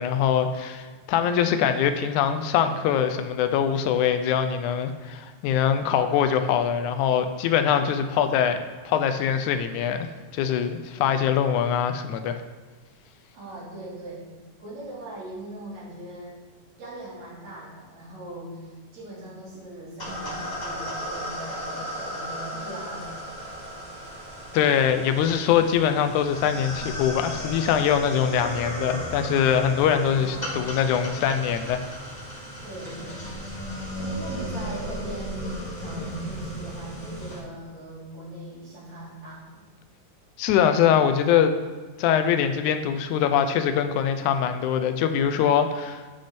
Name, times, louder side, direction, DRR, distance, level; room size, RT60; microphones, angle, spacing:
voice 1, 0.0-10.1 10.3-12.4 24.5-31.8 40.4-41.5 42.0-46.0, left 8 dB, 90° left, 8 dB, 2.1 m, -23 dB
voice 2, 13.3-14.3 14.6-16.4 16.8-23.3 30.0-30.6 32.6-33.3 34.0-39.6, right 1 dB, 70° right, -6 dB, 4.0 m, -40 dB
sound 1, 20.0-37.4, equal, 20° left, 1.4 m, -35 dB
9.5 x 6.3 x 4.3 m, 1.3 s
omnidirectional pair, 3.4 m